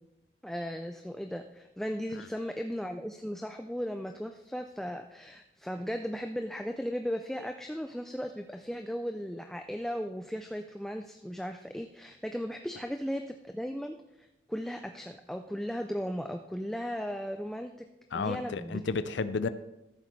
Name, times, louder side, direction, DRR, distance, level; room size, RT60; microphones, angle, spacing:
voice 1, 0.4-17.7 18.1-18.8, equal, ahead, 6 dB, 0.3 m, -36 dB
voice 2, 18.1-19.5, left 4 dB, 75° left, 13 dB, 0.4 m, -32 dB
14.0 x 7.7 x 3.2 m, 0.94 s
head